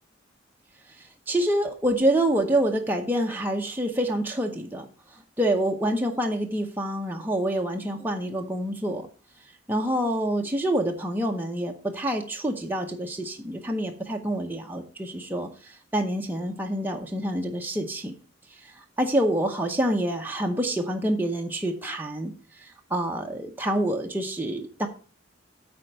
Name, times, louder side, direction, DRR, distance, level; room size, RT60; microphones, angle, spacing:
voice 1, 1.3-4.9 5.4-9.1 9.7-18.1 19.0-22.3 22.6-24.9, right 1 dB, 10° right, 1 dB, 0.8 m, -27 dB
8.9 x 4.3 x 6.6 m, 0.40 s
head